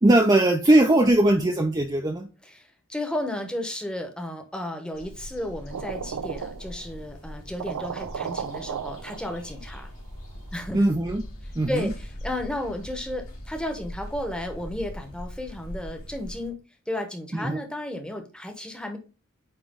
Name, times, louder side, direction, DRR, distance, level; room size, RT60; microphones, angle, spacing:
voice 1, 0.0-2.3 10.7-11.2 11.6-11.9 17.3-17.6, right 1 dB, 20° right, 3 dB, 0.5 m, -20 dB
voice 2, 2.4-9.9 10.5-10.8 11.7-16.6 16.9-19.0, left 1 dB, 5° left, 5 dB, 1.0 m, -33 dB
sound 1, 4.9-16.5, left 1 dB, 75° left, 2.7 m, -42 dB
sound 2, 5.7-7.0 7.3-7.4 7.6-9.8, right 7 dB, 85° right, 0.4 m, -35 dB
sound 3, 9.4-16.0, equal, 55° left, 1.7 m, -44 dB
8.8 x 3.1 x 3.6 m, 0.33 s
head